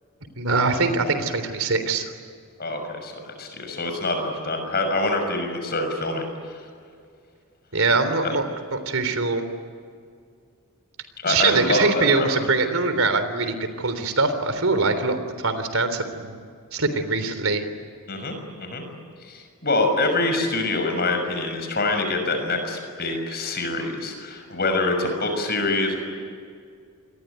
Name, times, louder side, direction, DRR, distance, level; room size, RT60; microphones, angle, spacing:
voice 1, 0.4-2.1 7.7-8.5 8.7-9.4 11.2-16.4 16.7-17.6, right 3 dB, 70° right, 10 dB, 3.6 m, -23 dB
voice 2, 2.6-6.5 8.2-8.3 11.2-12.3 18.1-18.8 19.2-26.0, left 2 dB, 45° left, 5 dB, 6.3 m, -25 dB
27.5 x 22.0 x 9.4 m, 2.2 s
head